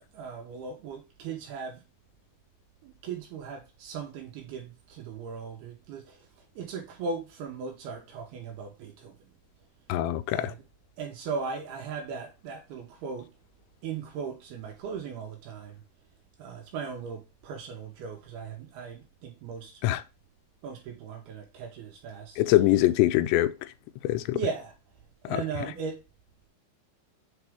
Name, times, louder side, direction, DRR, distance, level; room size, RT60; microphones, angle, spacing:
voice 1, 0.1-1.8 2.8-6.3 6.6-9.3 10.3-10.6 11.0-13.3 13.8-15.8 16.4-19.8 20.6-22.4 24.3-24.7 25.2-26.0, right 5 dB, 70° right, 2.6 m, -38 dB
voice 2, 9.9-10.5 19.8-20.0 22.4-23.5 24.0-24.4 25.2-25.4, left 15 dB, 80° left, 2.6 m, -23 dB
8.2 x 4.2 x 3.5 m
omnidirectional pair, 5.4 m